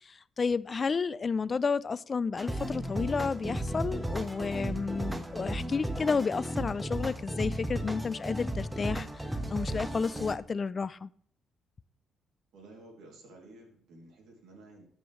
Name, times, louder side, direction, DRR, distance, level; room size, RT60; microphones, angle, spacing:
voice 1, 0.4-9.1 9.5-11.1, left 5 dB, 35° left, 0.4 m, -31 dB
sound 1, 2.4-10.4, right 1 dB, 10° right, 1.0 m, -35 dB
voice 2, 12.5-14.8, right 2 dB, 80° right, 2.7 m, -52 dB
13.0 x 5.3 x 3.2 m
cardioid pair, 90°, 0 cm